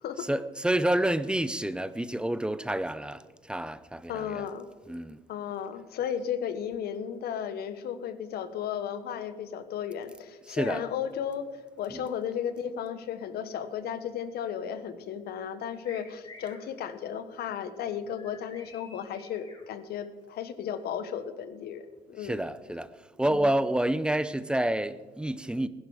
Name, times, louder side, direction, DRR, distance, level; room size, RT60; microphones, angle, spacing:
voice 1, 0.2-4.5 4.9-5.2 10.5-10.8 11.9-12.0 22.2-22.9 23.2-25.7, right 1 dB, 5° right, 0.6 m, -29 dB
voice 2, 4.1-4.7 5.3-11.5 11.8-21.8 22.1-22.4 23.3-23.6, left 8 dB, 70° left, 1.3 m, -34 dB
sound 1, 15.8-16.6 18.1-19.6, left 3 dB, 25° left, 4.9 m, -50 dB
20.0 x 11.0 x 5.0 m
cardioid pair, 110°, 17 cm